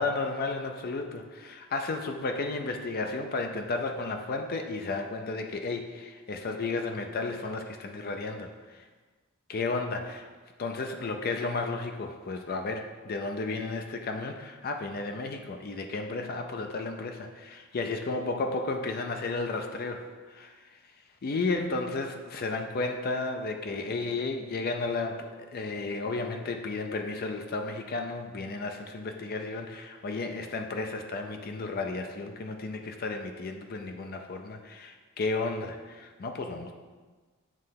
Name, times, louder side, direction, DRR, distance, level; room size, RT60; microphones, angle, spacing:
voice 1, 0.0-8.5 9.5-10.2 10.6-20.6 21.2-36.7, left 3 dB, 45° left, 5 dB, 0.5 m, -33 dB
7.4 x 3.2 x 5.7 m, 1.4 s
head